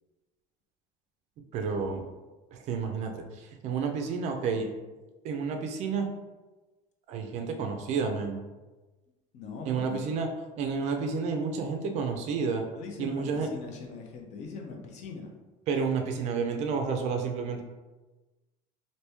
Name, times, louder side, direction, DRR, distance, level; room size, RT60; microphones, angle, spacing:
voice 1, 1.5-2.1 2.5-4.7 5.2-6.1 7.1-8.4 9.6-10.3 10.6-12.6 13.0-13.5 15.7-17.6, right 5 dB, 45° right, 4 dB, 0.4 m, -30 dB
voice 2, 9.3-10.2 12.7-15.3, left 4 dB, 50° left, 2 dB, 0.6 m, -41 dB
2.9 x 2.6 x 3.3 m, 1.2 s
cardioid pair, 165°, 16 cm